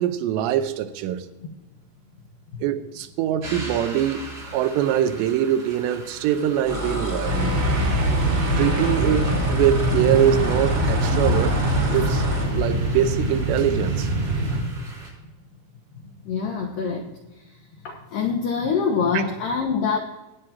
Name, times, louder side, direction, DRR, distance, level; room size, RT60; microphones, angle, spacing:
voice 1, 0.0-1.3 2.6-4.3 4.5-7.6 8.6-11.6 11.9-12.2 12.5-14.1, right 10 dB, 80° right, 2.7 m, -23 dB
sound 1, 3.4-15.1, right 2 dB, 30° right, 4.5 m, -41 dB
sound 2, 6.7-12.5, left 1 dB, 15° right, 1.6 m, -29 dB
sound 3, 7.2-14.6, right 1 dB, 45° right, 4.0 m, -23 dB
voice 2, 16.0-20.0, left 5 dB, 85° left, 1.9 m, -26 dB
22.0 x 9.0 x 2.8 m
omnidirectional pair, 5.6 m